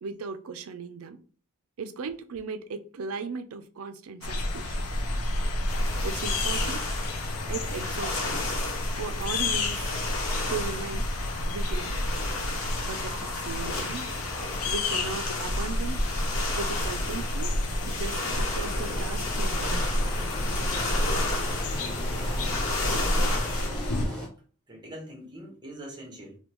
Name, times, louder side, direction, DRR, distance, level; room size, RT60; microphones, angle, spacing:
voice 1, 0.0-1.2 1.8-4.8 6.0-6.8 7.5-8.4 8.9-10.0 10.5-11.1 11.4-12.0 12.8-14.0 14.6-16.0 16.5-17.5 17.8-20.1, right 4 dB, 70° right, 0.4 m, -37 dB
sound 1, 4.2-24.1, left 1 dB, 85° left, 0.6 m, -30 dB
sound 2, 5.7-23.7, left 2 dB, 65° left, 0.9 m, -34 dB
Engine, 15.8-24.3, equal, 5° left, 1.1 m, -39 dB
voice 2, 22.8-23.2 24.7-26.4, right 1 dB, 20° right, 1.0 m, -43 dB
3.6 x 2.2 x 3.0 m
head